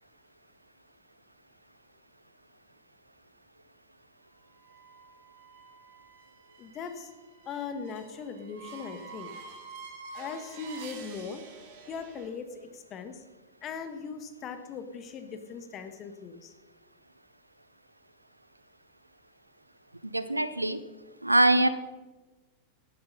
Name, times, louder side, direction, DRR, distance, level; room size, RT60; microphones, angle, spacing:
sound 1, 4.6-12.3, right 5 dB, 50° right, 2.2 m, -48 dB
voice 1, 6.6-7.1 7.4-9.3 10.1-11.4 11.9-13.2 13.6-16.5, left 5 dB, 30° left, 8 dB, 1.4 m, -39 dB
voice 2, 20.1-20.8 21.2-21.7, right 1 dB, 85° right, 14 dB, 0.6 m, -23 dB
12.0 x 9.8 x 5.5 m, 1.2 s
figure-of-eight pair, 90°, 0 cm